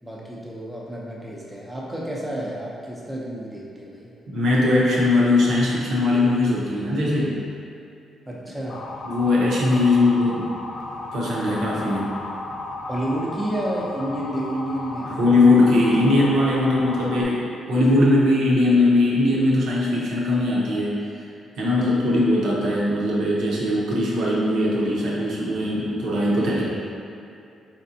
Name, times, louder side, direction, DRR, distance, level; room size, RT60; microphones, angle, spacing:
voice 1, 0.0-4.1 8.3-8.8 12.9-15.2 21.6-21.9, right 1 dB, 10° right, -4 dB, 0.6 m, -30 dB
voice 2, 4.3-7.4 9.0-10.5 11.1-12.1 15.0-21.0 21.6-26.6, left 2 dB, 65° right, -5 dB, 0.8 m, -20 dB
Motor vehicle (road) / Siren, 8.7-17.2, left 2 dB, 55° left, 0.4 m, -34 dB
4.3 x 3.3 x 2.7 m, 2.6 s
cardioid pair, 145°, 0 cm